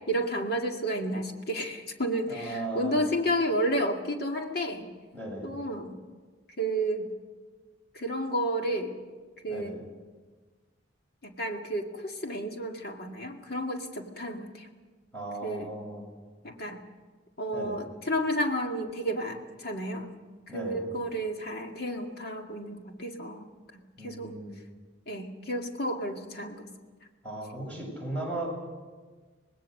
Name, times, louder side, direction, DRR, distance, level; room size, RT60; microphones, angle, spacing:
voice 1, 0.1-4.9 5.4-6.0 6.6-7.1 7.9-9.0 9.4-9.8 11.2-14.7 15.4-15.8 16.4-16.8 17.4-20.1 20.5-23.4 24.0-24.4 25.1-26.7, equal, 55° left, 3 dB, 2.1 m, -31 dB
voice 2, 2.3-3.0 5.1-5.5 9.5-9.8 15.1-16.1 17.5-17.8 20.5-20.9 24.0-24.6 27.2-28.5, right 1 dB, 10° left, -2 dB, 7.4 m, -37 dB
25.0 x 19.5 x 6.6 m, 1.4 s
head